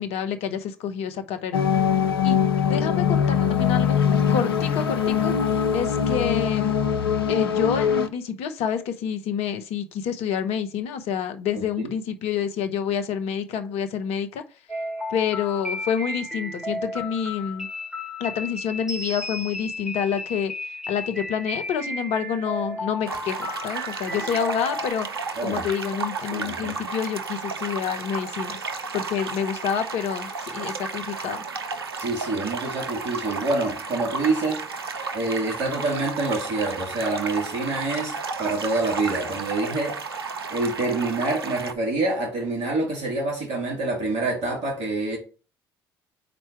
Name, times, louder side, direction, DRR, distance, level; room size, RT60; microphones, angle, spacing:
voice 1, 0.0-1.6 2.2-2.4 2.6-4.0 4.3-6.7 7.3-14.4 15.1-17.7 18.2-25.1 25.4-28.6 28.9-31.4, left 8 dB, 60° left, 0.8 m, -28 dB
sound 1, 1.5-8.1, left 7 dB, 85° left, 0.5 m, -22 dB
sound 2, 14.7-24.9, left 1 dB, 5° right, 3.4 m, -33 dB
sound 3, 23.1-41.7, right 4 dB, 85° right, 0.6 m, -33 dB
voice 2, 26.3-26.7 32.0-34.6 35.1-40.0 40.5-45.2, right 2 dB, 60° right, 3.2 m, -26 dB
5.1 x 4.4 x 4.5 m
figure-of-eight pair, 55°, 12 cm